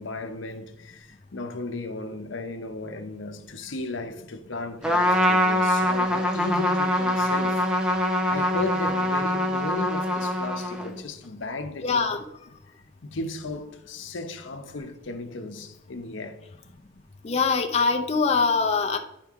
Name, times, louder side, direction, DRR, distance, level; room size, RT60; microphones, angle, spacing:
voice 1, 0.0-7.7 8.3-12.1 13.0-16.4, left 2 dB, 75° left, 0.8 m, -35 dB
Trumpet, 4.8-11.0, left 1 dB, 5° right, 0.8 m, -24 dB
voice 2, 11.8-12.2 17.2-19.0, left 4 dB, 35° left, 0.6 m, -23 dB
10.5 x 4.5 x 3.6 m
head